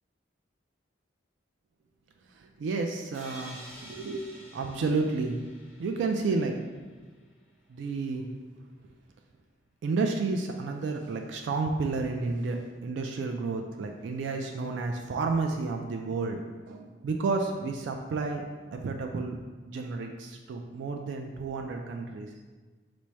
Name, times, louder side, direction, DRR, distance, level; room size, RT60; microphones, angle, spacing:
voice 1, 2.3-5.4 5.8-6.6 7.7-8.3 9.8-16.4 16.7-19.4 19.7-22.3, right 3 dB, 75° right, 3 dB, 0.3 m, -31 dB
sound 1, 3.1-6.9, equal, 5° right, 1.4 m, -49 dB
4.6 x 2.0 x 4.2 m, 1.3 s
head